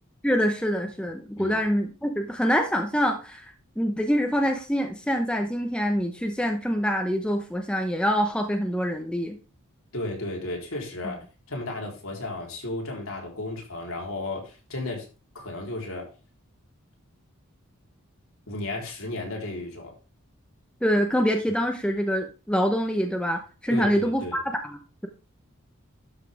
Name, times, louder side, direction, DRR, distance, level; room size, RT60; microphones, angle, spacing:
voice 1, 0.2-9.4 20.8-25.1, equal, 5° left, 4 dB, 0.8 m, -25 dB
voice 2, 9.9-15.1 15.3-16.1 18.5-19.9 23.7-24.4, left 2 dB, 65° left, 0 dB, 3.5 m, -34 dB
12.0 x 5.7 x 3.5 m, 0.33 s
head